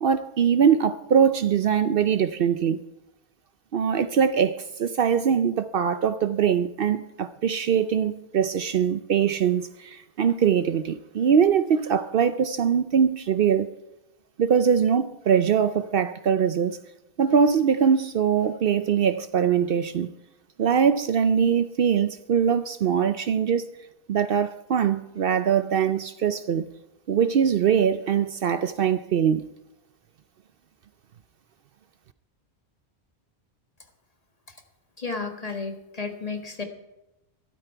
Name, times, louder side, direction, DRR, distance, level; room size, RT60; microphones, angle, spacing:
voice 1, 0.0-2.8 3.7-13.7 14.4-16.8 17.2-20.1 20.6-23.7 24.1-26.7 27.1-29.5, right 7 dB, 60° right, 0.7 m, -22 dB
voice 2, 35.0-36.6, left 4 dB, 35° left, 1.6 m, -32 dB
13.0 x 12.5 x 4.6 m
omnidirectional pair, 1.1 m